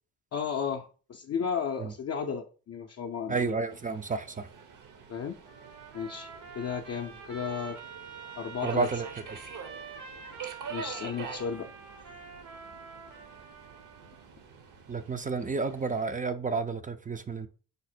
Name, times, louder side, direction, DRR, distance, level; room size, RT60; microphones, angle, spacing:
voice 1, 0.3-3.5 5.1-5.4 5.9-6.3 6.6-7.8 8.4-8.9 10.7-11.7, left 6 dB, 40° left, 0.5 m, -34 dB
voice 2, 3.3-4.5 8.6-9.1 14.9-17.5, right 4 dB, 20° right, 0.4 m, -31 dB
Subway metro underground, 3.7-16.1, right 6 dB, 55° right, 0.8 m, -46 dB
Trumpet, 5.4-14.3, right 5 dB, 75° right, 1.5 m, -47 dB
5.1 x 2.0 x 4.2 m
supercardioid pair, 60°, 39 cm